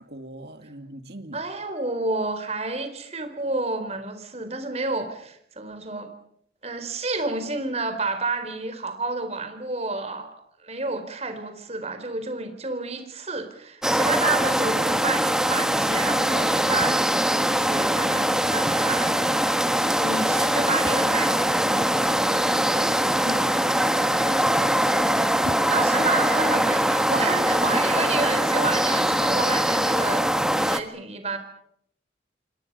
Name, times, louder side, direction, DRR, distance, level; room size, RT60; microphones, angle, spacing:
voice 1, 0.0-1.5 22.3-24.9, right 1 dB, 60° right, 2.4 m, -40 dB
voice 2, 1.3-6.1 6.6-10.3 10.6-19.5 20.0-21.9 25.7-31.4, right 3 dB, 35° right, 4.2 m, -30 dB
sound 1, 13.8-30.8, right 1 dB, 5° right, 1.4 m, -22 dB
28.5 x 25.5 x 5.5 m
head